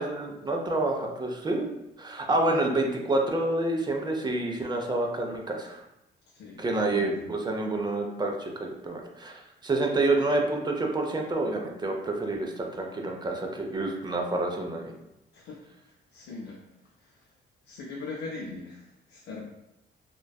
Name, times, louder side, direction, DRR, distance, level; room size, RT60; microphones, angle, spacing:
voice 1, 0.0-1.6 2.0-5.8 6.6-14.9, right 2 dB, 20° right, 1 dB, 0.4 m, -28 dB
voice 2, 6.3-7.2 15.3-15.6 16.1-16.6 17.0-17.2 17.7-19.4, left 3 dB, 60° left, -2 dB, 0.4 m, -40 dB
2.5 x 2.2 x 2.2 m, 0.88 s
cardioid pair, 90°, 20 cm